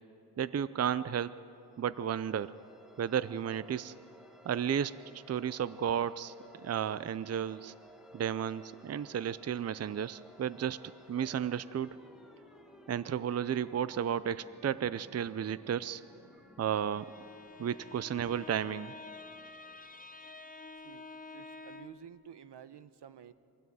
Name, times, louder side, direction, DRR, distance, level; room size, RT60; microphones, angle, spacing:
voice 1, 0.4-1.3 1.8-2.5 3.0-3.9 4.5-6.3 6.6-7.7 8.1-10.8 11.1-11.9 12.9-16.0 16.6-17.1 17.6-18.9, right 8 dB, 40° right, 16 dB, 0.5 m, -33 dB
sound 1, 1.6-20.2, equal, ahead, 1.9 m, -58 dB
Bowed string instrument, 16.7-22.1, left 3 dB, 20° left, 0.8 m, -49 dB
voice 2, 21.3-23.3, right 9 dB, 80° right, 13 dB, 1.0 m, -51 dB
24.0 x 16.0 x 9.3 m, 2.6 s
wide cardioid pair, 115°, 40 cm